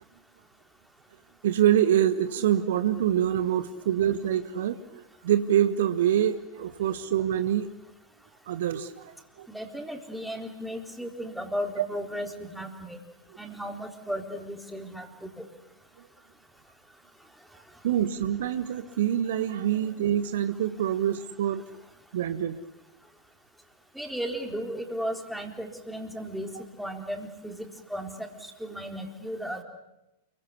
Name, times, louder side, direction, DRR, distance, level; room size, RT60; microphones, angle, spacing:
voice 1, 1.4-7.7 8.5-9.5 17.8-21.6 22.1-22.6, right 10 dB, 55° right, 11 dB, 1.5 m, -25 dB
voice 2, 9.5-13.0 13.4-15.5 24.0-26.5 26.8-28.3 28.6-29.6, equal, ahead, 3 dB, 3.9 m, -35 dB
29.0 x 23.0 x 8.4 m, 0.92 s
figure-of-eight pair, 95°, 0 cm